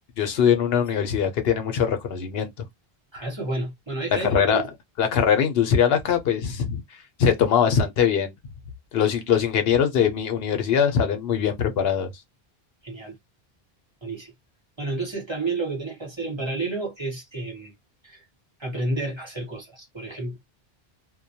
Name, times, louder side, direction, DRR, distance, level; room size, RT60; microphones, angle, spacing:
voice 1, 0.2-2.5 4.2-4.6 5.0-6.8 7.2-8.3 8.9-12.1, left 7 dB, 75° left, 0.8 m, -22 dB
voice 2, 3.1-4.7 12.8-13.2 14.0-14.3 14.8-17.7 18.0-18.2 18.6-20.4, right 2 dB, 30° right, 1.0 m, -30 dB
2.2 x 2.2 x 2.7 m
omnidirectional pair, 1.0 m